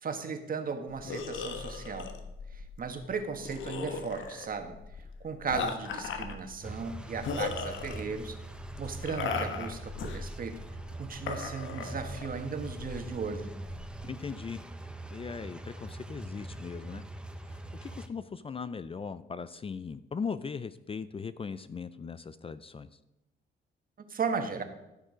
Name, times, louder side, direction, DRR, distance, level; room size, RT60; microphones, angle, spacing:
voice 1, 0.0-2.1 2.5-4.8 5.2-8.4 8.8-10.6 11.0-13.5 24.1-24.6, right 5 dB, 45° right, 6 dB, 1.6 m, -36 dB
sound 1, 0.9-14.0, left 5 dB, 75° left, 1.3 m, -38 dB
sound 2, 6.6-18.1, right 2 dB, 5° right, 1.0 m, -43 dB
voice 2, 14.0-14.6 15.1-17.0 17.4-23.0, left 5 dB, 30° left, 14 dB, 0.5 m, -39 dB
15.0 x 6.5 x 5.1 m, 0.94 s
cardioid pair, 90°, 20 cm